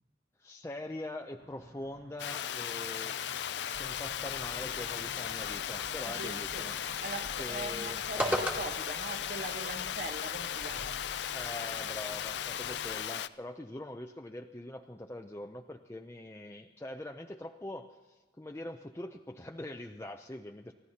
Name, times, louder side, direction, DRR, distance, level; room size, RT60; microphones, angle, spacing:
voice 1, 0.4-3.2 3.8-6.7 7.3-8.0 11.3-20.7, left 1 dB, 15° left, 3 dB, 0.5 m, -43 dB
sound 1, 1.4-7.1, right 1 dB, 75° right, 1.7 m, -55 dB
Water, 2.2-13.3, left 9 dB, 70° left, 0.4 m, -37 dB
sound 2, 3.7-12.9, equal, 10° right, 1.5 m, -42 dB
voice 2, 6.1-11.0, right 2 dB, 50° right, 5 dB, 1.2 m, -42 dB
30.0 x 14.5 x 2.8 m, 1.4 s
head